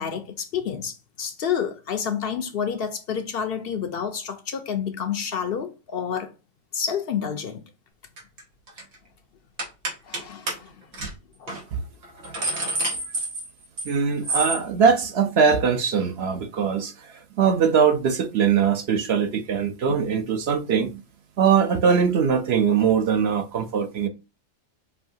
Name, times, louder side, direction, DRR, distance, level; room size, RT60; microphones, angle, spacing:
voice 1, 0.0-6.3 6.7-7.6 10.0-10.8 11.4-11.6, left 7 dB, 60° left, 0.7 m, -29 dB
sound 1, 8.2-8.4 8.7-8.9 9.6-10.2 10.5-10.6 10.9-11.1 11.5-11.6 12.0-13.9 14.2-14.6, right 2 dB, 85° right, 1.9 m, -28 dB
voice 2, 13.9-16.9 17.4-21.0 21.4-24.1, right 6 dB, 60° right, 0.8 m, -21 dB
5.5 x 2.7 x 2.7 m
omnidirectional pair, 1.4 m